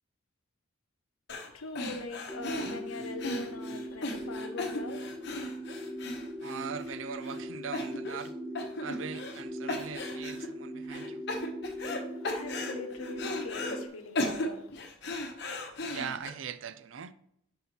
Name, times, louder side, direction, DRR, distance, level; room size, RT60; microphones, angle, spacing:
voice 1, 1.3-5.3 11.8-14.9, left 3 dB, 80° left, 0.8 m, -42 dB
sound 1, 1.3-1.5 1.8-6.9 7.3-7.4 7.7-8.3 8.6-9.4 9.7-10.5 10.9-12.0 12.2-13.8 14.2-16.3, left 2 dB, 50° left, 1.0 m, -36 dB
sound 2, 2.3-13.9, equal, 5° left, 0.4 m, -40 dB
voice 2, 6.4-8.3 8.8-11.2 15.9-17.1, right 6 dB, 65° right, 0.4 m, -40 dB
5.5 x 5.4 x 4.4 m
head